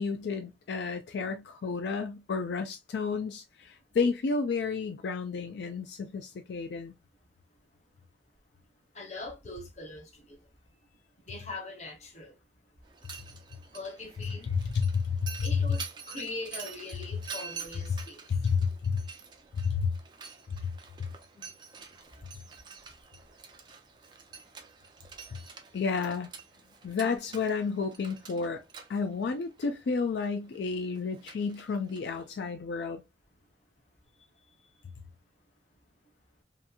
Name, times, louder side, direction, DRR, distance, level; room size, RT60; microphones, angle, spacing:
voice 1, 0.0-6.9 14.5-15.7 18.3-19.0 19.6-19.9 25.7-26.3 26.8-28.6 28.9-33.0, left 5 dB, 75° left, 0.4 m, -31 dB
voice 2, 8.9-10.5 11.2-12.4 13.6-14.5 15.4-18.4 22.5-22.6 34.2-34.3 34.5-34.8, left 2 dB, 40° left, 0.8 m, -42 dB
Mechanisms, 12.8-32.4, right 6 dB, 25° right, 0.4 m, -47 dB
2.8 x 2.6 x 2.3 m
head